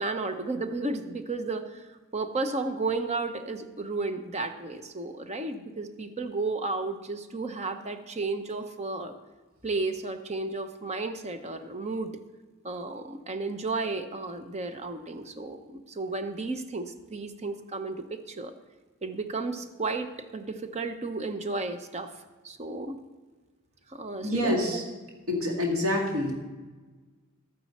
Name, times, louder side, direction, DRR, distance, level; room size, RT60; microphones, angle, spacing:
voice 1, 0.0-9.1 9.6-12.1 12.6-18.5 19.0-22.1 22.4-23.0 23.9-24.8, right 3 dB, 30° right, 8 dB, 0.8 m, -33 dB
voice 2, 24.2-24.8 25.3-26.3, left 1 dB, 75° right, 0 dB, 1.9 m, -26 dB
12.5 x 9.2 x 4.3 m, 1.3 s
head